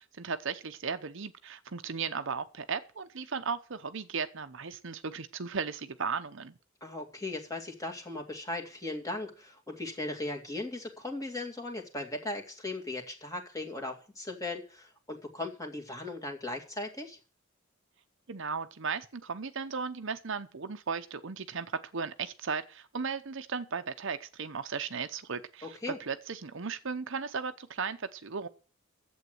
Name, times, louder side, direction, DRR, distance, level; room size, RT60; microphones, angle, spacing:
voice 1, 0.0-6.5 18.3-21.7 21.9-28.5, right 5 dB, 65° right, 0.8 m, -36 dB
voice 2, 6.8-17.2 25.6-26.0, left 2 dB, 15° left, 2.3 m, -38 dB
11.0 x 8.0 x 7.9 m
head